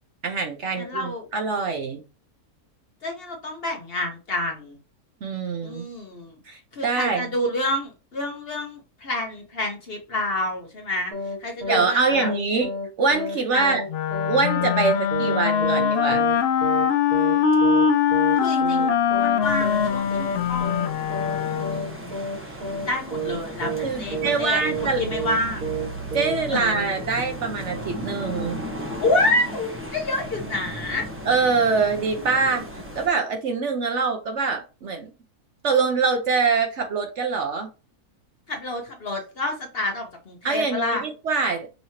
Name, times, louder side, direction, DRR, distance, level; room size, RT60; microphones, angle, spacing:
voice 1, 0.2-2.0 5.2-5.8 6.5-7.2 11.7-12.7 13.0-13.8 14.3-16.3 23.8-25.0 26.1-28.6 31.3-32.6 32.9-35.1 35.6-37.7 40.4-41.7, right 4 dB, 60° right, 0.9 m, -24 dB
voice 2, 0.7-1.3 3.0-4.8 5.6-6.4 6.7-11.1 11.4-12.3 13.5-13.8 18.4-20.9 21.3-22.1 22.8-23.7 24.0-25.7 26.5-26.6 29.0-31.1 38.5-41.0, left 2 dB, 45° left, 1.0 m, -28 dB
sound 1, 11.1-11.4 11.6-11.9 12.1-12.4 12.6-12.9 13.1-13.4 13.6-13.9 14.1-14.4 14.6-14.9 15.1-15.4 15.6-15.9 16.1-16.4 16.6-16.9 17.1-17.4 17.6-17.9 18.1-18.4 18.6-18.9 19.1-19.4 19.6-19.9 20.1-20.4 20.6-20.9 21.1-21.4 21.6-21.9 22.1-22.4 22.6-22.9 23.1-23.4 23.6-23.9 24.1-24.4 24.6-24.9 25.1-25.4 25.6-25.9 26.1-26.4 26.6-26.9, right 3 dB, 80° right, 2.6 m, -30 dB
Wind instrument woodwind instrument, 13.9-22.0, left 7 dB, 70° left, 0.6 m, -22 dB
sound 2, 19.4-33.1, equal, 10° right, 0.8 m, -36 dB
5.6 x 2.9 x 2.8 m
omnidirectional pair, 1.6 m